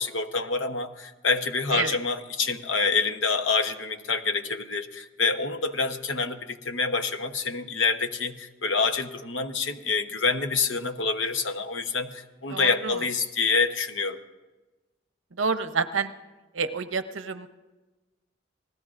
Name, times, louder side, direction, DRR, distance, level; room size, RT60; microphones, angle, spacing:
voice 1, 0.0-14.2, left 4 dB, 70° left, 7 dB, 1.0 m, -27 dB
voice 2, 12.5-13.0 15.4-16.1 16.5-17.5, right 5 dB, 80° right, 10 dB, 0.8 m, -28 dB
29.5 x 19.5 x 2.5 m, 1.2 s
head